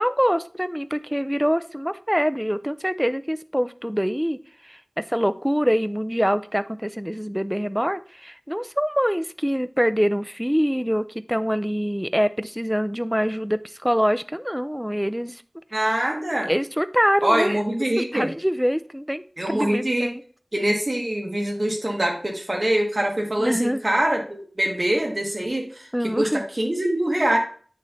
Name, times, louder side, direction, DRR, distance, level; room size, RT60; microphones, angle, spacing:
voice 1, 0.0-4.4 4.6-15.4 16.4-17.6 18.0-19.2 19.5-20.2 23.4-23.8 25.9-26.4, equal, 5° right, 12 dB, 0.4 m, -24 dB
voice 2, 15.7-16.5 17.2-18.3 19.4-20.1 20.5-25.6 26.2-27.4, right 1 dB, 55° right, 1 dB, 1.6 m, -24 dB
8.5 x 3.2 x 4.0 m, 0.44 s
wide cardioid pair, 45°, 0 cm